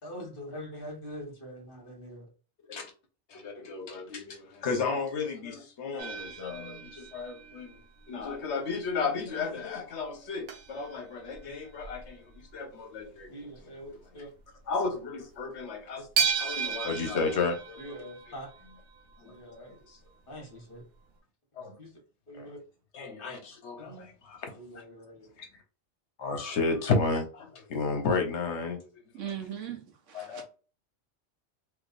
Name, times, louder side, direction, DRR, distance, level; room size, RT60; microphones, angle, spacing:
voice 1, 0.0-2.3 13.3-14.3 17.8-18.5 19.2-19.9 20.3-20.8 21.8-21.9 22.3-22.6 23.8-24.1 24.5-25.3, equal, 45° left, 1.5 m, -44 dB
voice 2, 3.3-7.7 8.1-12.2 12.5-13.3 14.7-16.1 16.4-17.9 19.2-19.3 19.9-20.0 21.6-21.7 22.3-22.5 22.9-24.5 25.4-25.5 26.2-28.8 30.1-30.5, left 4 dB, 70° left, 1.1 m, -33 dB
sound 1, 6.0-8.5 8.9-9.1 9.6-9.7 9.9-10.0 10.5-12.6 13.0-13.2 13.5-13.6 14.2-14.4 14.8-14.9 16.2-19.1 20.3-20.4 20.8-20.9, right 7 dB, 65° right, 0.8 m, -35 dB
voice 3, 29.1-30.5, right 9 dB, 90° right, 1.2 m, -39 dB
3.4 x 3.1 x 2.5 m
omnidirectional pair, 1.2 m